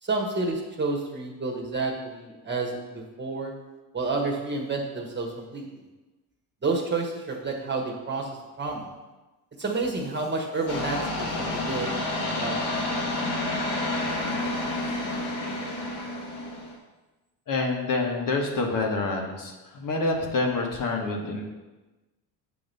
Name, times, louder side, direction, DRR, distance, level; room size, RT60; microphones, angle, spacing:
voice 1, 0.0-3.5 3.9-5.7 6.6-8.9 9.6-11.9 12.3-12.6, right 3 dB, 25° right, 0 dB, 1.3 m, -30 dB
sound 1, 10.7-16.7, left 2 dB, 70° left, 1.4 m, -29 dB
voice 2, 17.5-21.4, left 3 dB, 50° left, 1 dB, 1.3 m, -27 dB
8.0 x 3.0 x 5.3 m, 1.1 s
supercardioid pair, 85°, 41 cm